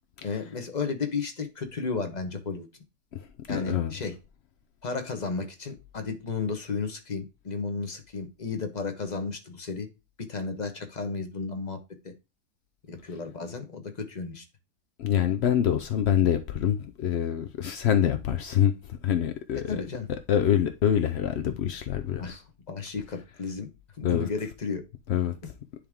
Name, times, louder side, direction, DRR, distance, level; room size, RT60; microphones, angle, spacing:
voice 1, 0.2-2.7 3.5-4.2 4.8-9.9 10.3-11.8 12.0-12.1 12.9-14.4 19.7-20.1 22.2-22.4 22.7-23.7 24.0-24.8, left 4 dB, 30° left, 1.1 m, -33 dB
voice 2, 3.5-3.9 15.0-18.7 19.0-19.8 20.3-22.4 24.0-24.3 25.1-25.3, left 9 dB, 70° left, 0.6 m, -25 dB
10.0 x 3.5 x 3.5 m
omnidirectional pair, 1.8 m